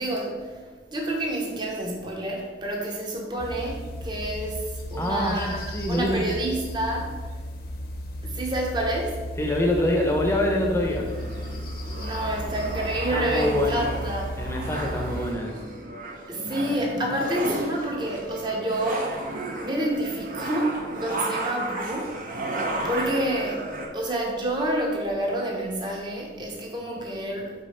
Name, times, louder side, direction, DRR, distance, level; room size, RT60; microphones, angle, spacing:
voice 1, 0.0-7.2 8.2-9.2 11.9-14.4 16.3-19.2 19.6-22.5 22.8-23.7 23.9-27.5, right 1 dB, 25° right, -1 dB, 1.1 m, -28 dB
sound 1, 3.4-15.3, equal, 55° left, 0.9 m, -35 dB
voice 2, 5.0-6.4 9.4-11.1 13.1-13.9 14.4-15.6, left 1 dB, 15° left, 0 dB, 0.9 m, -25 dB
sound 2, 11.1-23.9, right 2 dB, 45° right, 0.9 m, -34 dB
5.4 x 4.1 x 5.6 m, 1.4 s
head